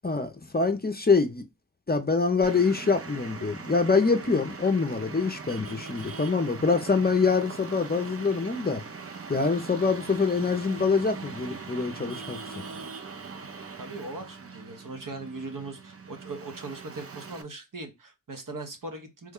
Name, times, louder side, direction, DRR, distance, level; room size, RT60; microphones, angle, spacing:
voice 1, 0.0-1.4 1.9-8.8 9.3-12.4, left 4 dB, 30° left, 0.5 m, -25 dB
Traffic noise roadway noise, 2.4-17.4, right 5 dB, 45° right, 0.5 m, -41 dB
voice 2, 13.8-19.3, right 3 dB, 70° right, 0.9 m, -39 dB
3.1 x 2.2 x 3.5 m
wide cardioid pair, 50°, 33 cm